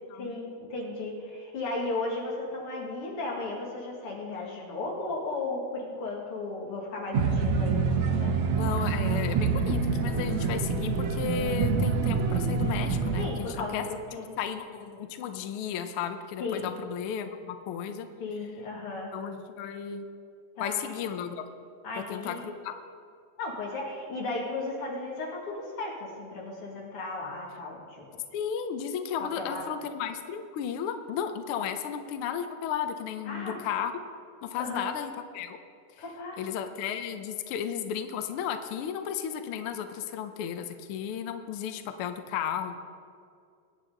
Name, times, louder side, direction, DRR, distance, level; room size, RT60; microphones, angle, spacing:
voice 1, 0.1-7.9 8.2-8.3 13.2-14.3 16.4-16.7 18.2-19.1 20.5-21.0 21.8-22.4 23.4-28.0 29.2-29.7 33.2-33.6 34.5-34.9 36.0-36.5, left 2 dB, 50° left, -2 dB, 3.1 m, -35 dB
sound 1, 7.1-13.3, right 4 dB, 70° right, 2.1 m, -26 dB
voice 2, 8.6-13.8 14.4-18.1 19.1-20.1 20.6-21.5 22.1-22.7 28.3-33.9 34.4-35.6 36.4-42.8, left 8 dB, 85° left, 8 dB, 1.2 m, -34 dB
22.0 x 9.5 x 3.9 m, 2.4 s
omnidirectional pair, 3.5 m